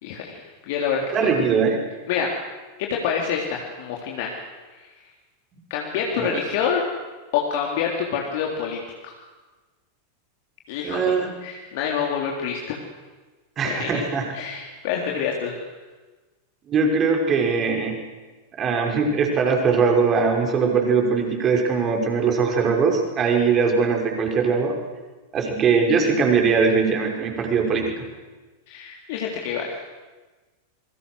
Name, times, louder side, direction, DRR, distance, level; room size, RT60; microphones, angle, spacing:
voice 1, 0.0-1.3 2.1-2.3 2.8-4.3 4.8-4.9 5.7-6.9 7.3-9.1 10.7-12.8 13.6-14.0 14.3-15.6 28.7-29.8, left 7 dB, 50° left, -1 dB, 3.6 m, -27 dB
voice 2, 1.1-1.8 6.2-6.3 10.8-11.3 13.6-14.2 16.7-18.0 18.6-24.8 25.3-27.9, right 5 dB, 30° right, 2 dB, 5.8 m, -21 dB
27.5 x 23.5 x 6.5 m, 1.3 s
figure-of-eight pair, 90°, 0 cm